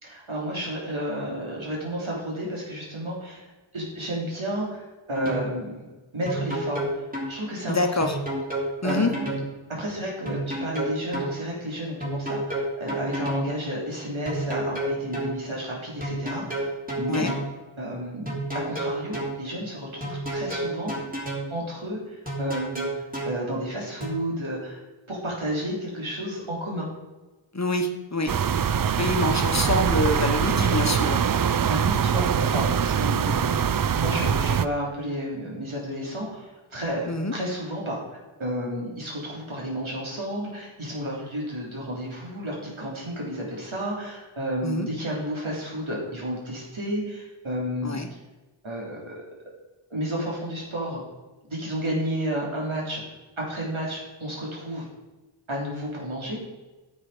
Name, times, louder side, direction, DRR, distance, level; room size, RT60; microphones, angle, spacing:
voice 1, 0.0-5.8 6.1-8.1 8.6-9.3 9.7-17.3 17.8-20.9 21.5-24.8 25.1-26.9 31.7-33.6 33.9-38.0 38.4-48.0 48.6-49.1 49.9-51.0 51.4-53.0 53.4-54.9 55.5-56.4, equal, 75° right, -4 dB, 3.3 m, -32 dB
sound 1, 5.1-5.5 6.3-7.3 8.0-9.5 10.3-11.3 12.0-13.5 14.3-15.3 16.0-17.5 18.3-19.3 20.0-21.5 22.3-23.4 24.0-24.1, right 1 dB, 15° right, 3.1 m, -30 dB
voice 2, 7.7-8.2 8.8-9.1 17.1-17.3 27.5-28.3 29.0-31.2 37.1-37.3 44.6-44.9 47.8-48.1, left 2 dB, 35° left, 5 dB, 1.1 m, -26 dB
sound 2, 28.3-34.6, right 7 dB, 45° right, 0.5 m, -23 dB
9.7 x 7.4 x 4.9 m, 1.2 s
wide cardioid pair, 50°, 49 cm